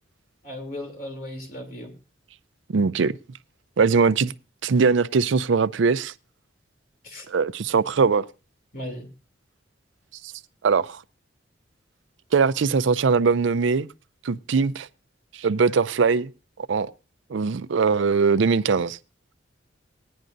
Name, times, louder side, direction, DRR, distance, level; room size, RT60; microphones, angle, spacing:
voice 1, 0.4-1.9 7.0-7.2 8.7-9.1, left 1 dB, 50° left, 3.0 m, -36 dB
voice 2, 2.7-3.1 3.8-4.3 4.6-6.1 7.3-8.2 10.6-11.0 12.3-13.9 14.2-14.9 15.3-16.3 16.7-16.9 17.3-19.0, right 5 dB, 75° right, 0.5 m, -21 dB
18.5 x 10.5 x 2.6 m
head